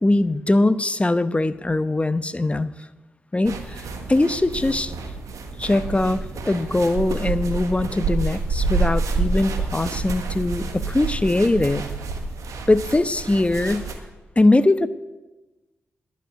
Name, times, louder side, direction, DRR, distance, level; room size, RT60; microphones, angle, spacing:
voice 1, 0.0-2.7 3.3-4.9 5.6-11.9 12.7-13.9 14.4-14.9, left 2 dB, 20° left, 13 dB, 0.9 m, -21 dB
sound 1, 3.4-14.0, right 3 dB, 80° right, 1.4 m, -28 dB
11.0 x 8.3 x 9.4 m, 1.1 s
supercardioid pair, 45°, 5 cm